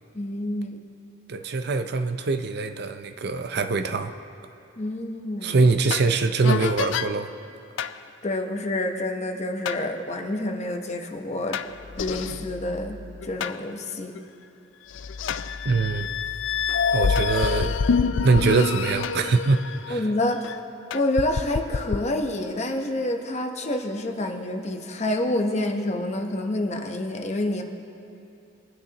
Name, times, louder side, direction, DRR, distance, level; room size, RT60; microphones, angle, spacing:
voice 1, 0.1-0.8 4.8-5.6 8.2-11.6 12.0-13.0 13.2-14.1 19.9-20.4 20.9-27.6, left 1 dB, 40° left, 4 dB, 1.0 m, -28 dB
voice 2, 1.3-4.1 5.4-7.3 15.6-16.1 16.9-17.8 18.2-20.1, right 4 dB, 60° right, 8 dB, 0.6 m, -23 dB
sound 1, 5.9-6.1 6.4-7.1 7.8-8.0 9.7-9.8 11.5-13.6 14.2-14.3 14.9-20.6 20.9-22.0, left 5 dB, 90° left, 0.4 m, -27 dB
23.0 x 9.7 x 3.0 m, 2.7 s
head